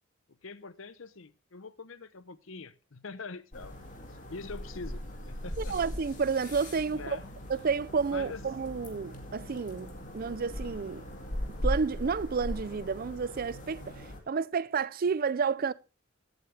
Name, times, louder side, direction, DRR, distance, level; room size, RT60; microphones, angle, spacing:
voice 1, 0.4-3.9 4.3-5.8 6.9-7.3 8.1-8.4, left 4 dB, 70° left, 0.8 m, -44 dB
sound 1, 3.5-14.2, equal, 40° left, 2.4 m, -39 dB
voice 2, 5.6-7.2 7.5-11.0 11.6-15.7, right 5 dB, 45° right, 0.4 m, -31 dB
16.0 x 8.2 x 3.3 m
head